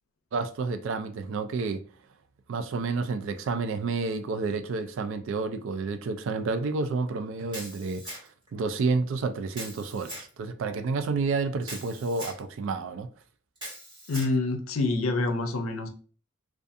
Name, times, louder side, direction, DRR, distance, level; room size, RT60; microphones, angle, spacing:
voice 1, 0.3-1.8 2.5-8.2 8.5-13.1, right 4 dB, 65° right, 0.3 m, -30 dB
Camera, 7.5-8.5 9.5-10.3 11.6-12.4 13.6-14.3, right 1 dB, 25° right, 1.3 m, -41 dB
voice 2, 14.1-15.9, left 2 dB, 85° left, 0.5 m, -27 dB
2.6 x 2.3 x 2.4 m
head